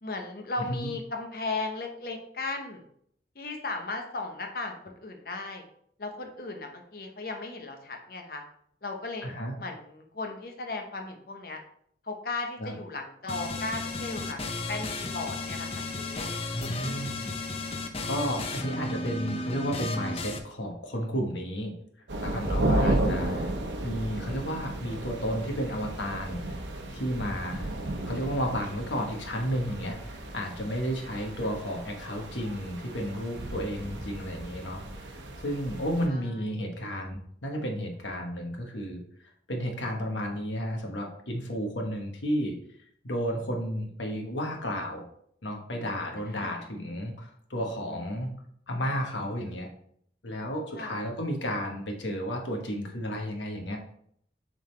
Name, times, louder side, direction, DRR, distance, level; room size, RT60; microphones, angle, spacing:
voice 1, 0.0-2.8 3.3-5.6 6.0-8.4 8.8-9.3 9.6-11.6 12.0-16.3 16.7-17.1 22.7-23.5 27.8-28.3 31.1-31.5 36.1-36.3 46.2-46.6 50.7-51.0, left 3 dB, 50° left, 3 dB, 0.9 m, -37 dB
voice 2, 9.2-9.6 12.6-12.7 16.5-17.4 18.0-21.7 22.2-23.4 23.8-26.6 26.9-27.7 28.1-35.2 35.4-39.0 39.5-42.5 43.0-45.0 45.4-48.3 48.7-49.7 50.2-53.8, equal, 85° left, 2 dB, 1.3 m, -32 dB
sound 1, 13.3-20.4, left 2 dB, 30° left, 0.6 m, -34 dB
sound 2, 22.1-36.1, right 1 dB, 85° right, 0.8 m, -33 dB
7.3 x 4.0 x 3.2 m, 0.67 s
head